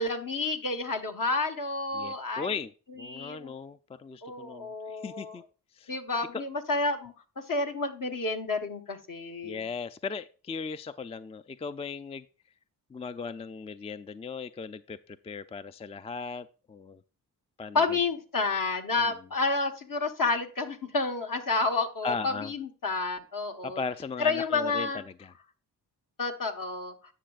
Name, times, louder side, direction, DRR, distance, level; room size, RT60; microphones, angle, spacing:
voice 1, 0.0-2.5 3.0-3.6 4.2-5.4 5.9-7.1 7.5-9.6 17.7-23.8 24.2-25.0 26.2-26.9, left 3 dB, 55° left, 5 dB, 1.4 m, -30 dB
voice 2, 1.9-5.4 5.7-5.9 6.3-6.4 9.4-12.3 12.9-17.0 17.6-18.0 19.0-19.1 22.0-22.5 23.6-25.3, left 4 dB, 15° left, 12 dB, 0.3 m, -37 dB
10.0 x 6.4 x 2.4 m, 0.37 s
cardioid pair, 55°, 40 cm